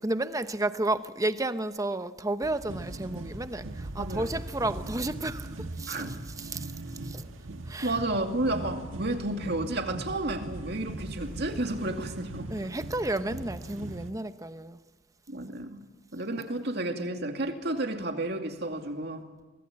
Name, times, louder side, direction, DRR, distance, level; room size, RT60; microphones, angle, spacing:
voice 1, 0.0-7.3 7.7-8.0 12.5-14.8, right 2 dB, 15° right, 0.9 m, -32 dB
sound 1, 2.4-14.1, right 1 dB, 85° right, 1.7 m, -40 dB
voice 2, 4.0-4.3 5.9-6.1 7.8-12.5 15.3-15.8 16.1-19.2, right 2 dB, 55° right, 2.5 m, -31 dB
24.0 x 20.0 x 8.7 m
head